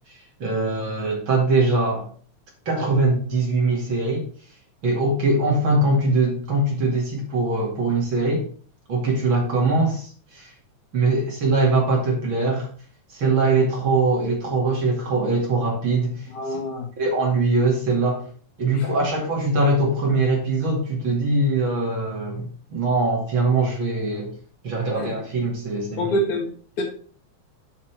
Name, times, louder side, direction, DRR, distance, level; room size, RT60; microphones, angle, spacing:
voice 1, 0.4-2.1 2.7-4.2 4.8-8.5 8.9-10.1 10.3-10.5 10.9-12.7 13.1-16.6 17.0-18.3 18.6-24.3 24.6-26.1, right 2 dB, 40° right, -2 dB, 2.9 m, -22 dB
voice 2, 16.3-16.9 18.7-18.9 24.9-25.1 26.0-26.5 26.8-26.9, equal, 70° left, 0 dB, 3.4 m, -26 dB
7.6 x 5.8 x 4.8 m, 0.43 s
omnidirectional pair, 3.5 m